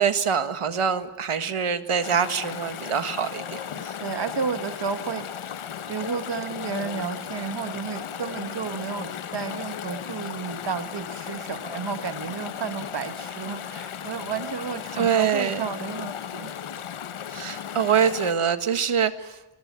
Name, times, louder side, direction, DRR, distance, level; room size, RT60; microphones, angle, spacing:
voice 1, 0.0-3.9 15.0-15.6 17.3-19.4, right 7 dB, 85° right, 9 dB, 1.7 m, -24 dB
Chatter / Stream, 2.0-18.3, left 8 dB, 75° left, 1.0 m, -36 dB
voice 2, 4.0-5.6 5.9-16.5, right 6 dB, 55° right, 8 dB, 1.5 m, -32 dB
24.5 x 20.5 x 9.5 m, 1.0 s
wide cardioid pair, 100°, 50 cm